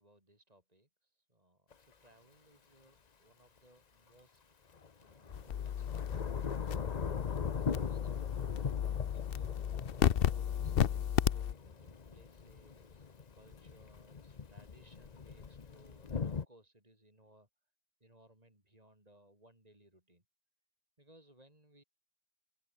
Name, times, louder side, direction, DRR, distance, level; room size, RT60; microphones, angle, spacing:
voice 1, 0.0-4.6 5.0-8.2 9.1-17.5 18.0-20.2 21.0-21.8, right 1 dB, 40° right, 6.1 m, -64 dB
Thunder / Rain, 1.7-1.8 4.7-16.5, left 5 dB, 45° left, 1.1 m, -41 dB
sound 1, 5.3-11.5, left 9 dB, 65° left, 0.9 m, -33 dB
open air
omnidirectional pair, 1.0 m